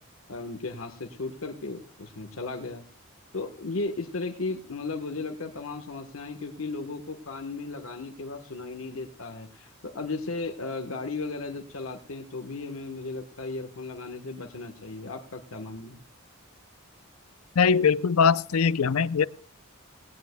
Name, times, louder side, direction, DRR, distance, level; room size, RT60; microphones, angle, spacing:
voice 1, 0.3-2.8 3.3-16.0, left 3 dB, 70° left, 4 dB, 1.2 m, -35 dB
voice 2, 17.6-19.2, left 6 dB, 85° left, 18 dB, 0.5 m, -21 dB
18.5 x 17.5 x 2.2 m, 0.41 s
head